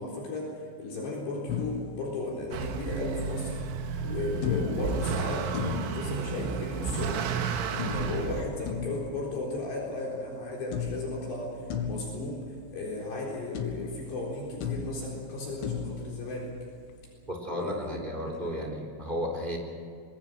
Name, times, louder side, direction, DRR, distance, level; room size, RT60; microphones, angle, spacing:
voice 1, 0.0-3.6 4.0-7.2 7.7-16.5 17.5-18.0 18.4-18.6, left 2 dB, 60° left, -3 dB, 6.1 m, -35 dB
sound 1, 1.5-3.0 4.4-7.0 7.8-10.4 10.7-13.3 13.5-17.0, left 6 dB, 80° left, 4.2 m, -37 dB
Motor vehicle (road) / Accelerating revving vroom, 2.5-8.4, right 5 dB, 90° right, 4.1 m, -32 dB
voice 2, 17.3-19.6, equal, 10° right, 0 dB, 3.7 m, -33 dB
26.5 x 21.0 x 6.4 m, 2.2 s
omnidirectional pair, 5.5 m